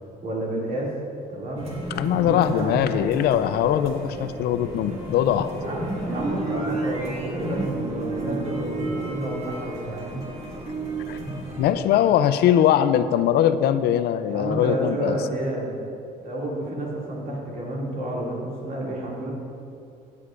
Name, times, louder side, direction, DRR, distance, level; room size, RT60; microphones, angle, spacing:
voice 1, 0.2-0.9 1.3-1.7 2.0-3.4 5.6-10.1 14.3-15.8 16.2-19.3, right 1 dB, 55° right, -3 dB, 2.4 m, -30 dB
sound 1, 1.6-11.7, right 2 dB, 35° right, 2.1 m, -32 dB
voice 2, 2.0-5.5 11.1-11.2 11.6-15.2, left 10 dB, 70° left, 12 dB, 0.4 m, -21 dB
14.0 x 8.4 x 2.5 m, 2.5 s
cardioid pair, 110°, 17 cm